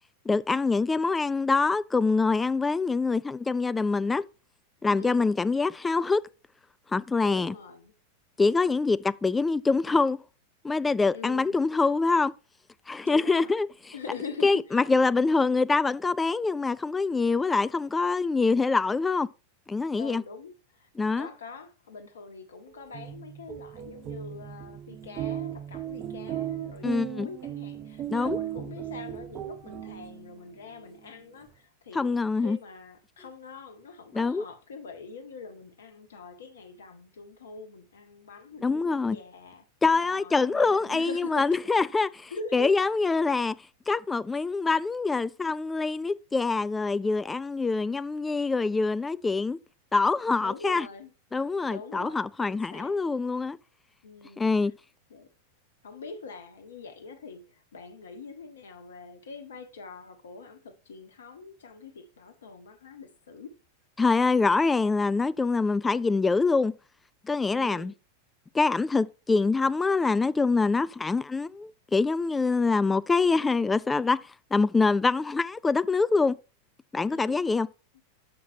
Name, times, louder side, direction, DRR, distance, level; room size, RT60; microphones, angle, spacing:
voice 1, 0.3-4.2 4.8-6.2 6.9-7.5 8.4-10.2 10.6-12.3 12.9-13.7 14.4-19.3 19.7-20.2 21.0-21.3 26.8-27.3 28.1-28.4 31.9-32.6 34.1-34.5 38.6-39.2 39.8-43.6 43.9-49.6 49.9-50.9 51.3-53.6 54.4-54.7 64.0-66.7 67.3-67.9 68.5-74.2 74.5-76.4 76.9-77.7, left 4 dB, 10° left, 0.4 m, -25 dB
voice 2, 5.0-5.3 7.2-7.9 11.1-11.6 13.0-13.5 13.9-14.9 20.0-20.9 21.2-39.6 40.0-41.5 42.3-42.7 50.4-51.1 51.7-53.0 54.0-54.4 55.1-55.3 55.8-63.6 67.5-68.0 77.1-77.4, left 4 dB, 65° left, 1.2 m, -43 dB
sound 1, 22.8-30.4, right 11 dB, 35° right, 0.7 m, -36 dB
7.4 x 5.9 x 4.4 m
figure-of-eight pair, 90°, 0 cm